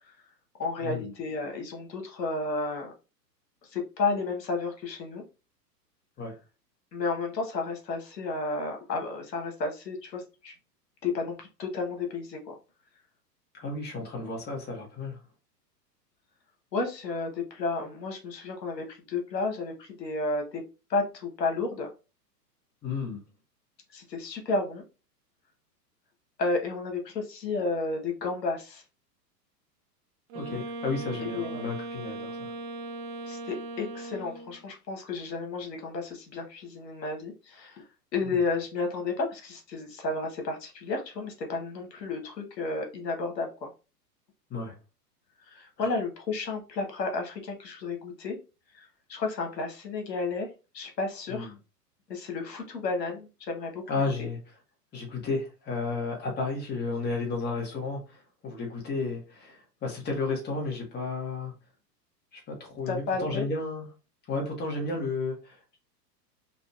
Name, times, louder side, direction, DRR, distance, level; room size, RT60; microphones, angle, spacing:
voice 1, 0.6-2.9 3.6-5.2 6.9-10.5 11.0-12.5 16.7-20.6 20.9-21.9 23.9-24.8 26.4-28.8 31.2-31.6 33.2-37.8 38.1-43.7 45.4-48.4 48.7-51.5 52.1-53.8 54.2-54.3 62.9-63.4, left 3 dB, 80° left, 3 dB, 1.2 m, -32 dB
voice 2, 13.5-15.2 22.8-23.2 30.3-32.5 38.2-38.4 44.5-44.8 45.8-45.9 51.3-51.5 53.9-54.4 54.9-61.5 62.3-63.8 64.3-65.8, left 3 dB, 20° left, 0 dB, 1.3 m, -33 dB
Wind instrument woodwind instrument, 30.3-34.6, right 2 dB, 35° right, 0.7 m, -38 dB
3.9 x 2.5 x 2.4 m, 0.30 s
hypercardioid pair, 110°, 49 cm